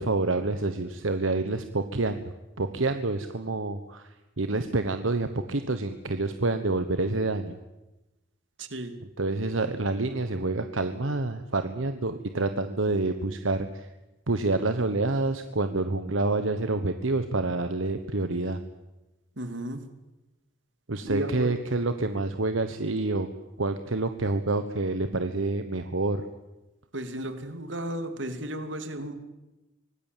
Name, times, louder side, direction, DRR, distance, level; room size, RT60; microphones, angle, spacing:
voice 1, 0.0-2.2 2.6-4.1 4.4-7.6 9.2-13.9 14.3-18.6 20.9-23.3 23.6-26.2, right 2 dB, 85° right, 9 dB, 1.2 m, -28 dB
voice 2, 8.6-9.0 19.4-19.8 21.0-21.5 26.9-29.1, right 1 dB, 65° right, 8 dB, 2.8 m, -34 dB
24.5 x 19.0 x 9.2 m, 1.0 s
head